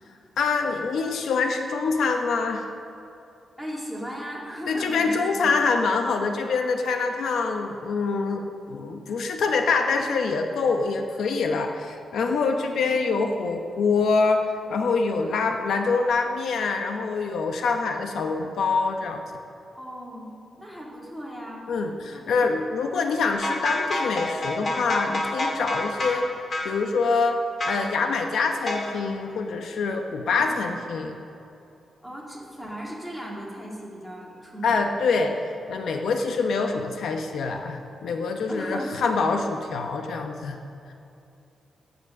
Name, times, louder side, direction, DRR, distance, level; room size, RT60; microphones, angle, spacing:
voice 1, 0.4-2.7 4.7-19.2 21.7-26.3 26.6-31.1 34.6-35.3 35.7-40.6 40.9-41.0, left 4 dB, 65° left, 4 dB, 0.9 m, -25 dB
voice 2, 3.6-5.5 12.6-12.9 19.8-21.7 22.1-22.5 30.3-30.8 32.0-34.9 38.5-39.5, equal, 5° left, -3 dB, 2.3 m, -37 dB
sound 1, 23.3-26.2 26.5-26.8 27.6-27.9 28.7-29.0, left 1 dB, 35° left, 1.8 m, -28 dB
16.0 x 8.2 x 6.5 m, 2.8 s
wide cardioid pair, 175°, 0 cm